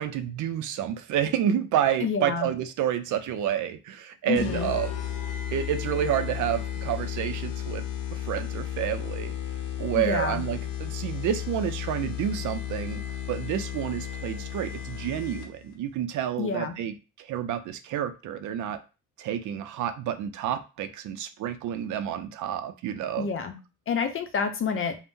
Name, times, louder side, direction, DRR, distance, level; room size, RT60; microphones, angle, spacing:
voice 1, 0.0-4.9 5.5-7.9 8.1-9.3 9.8-13.0 13.3-18.8 19.2-23.3, right 10 dB, 75° right, 10 dB, 0.5 m, -29 dB
voice 2, 2.0-2.5 4.3-4.7 10.0-10.4 16.4-16.7 23.2-23.6 23.9-25.0, left 5 dB, 45° left, 8 dB, 0.6 m, -28 dB
sound 1, 4.4-15.7, left 10 dB, 90° left, 0.6 m, -34 dB
2.5 x 2.1 x 3.6 m, 0.30 s
cardioid pair, 90°, 30 cm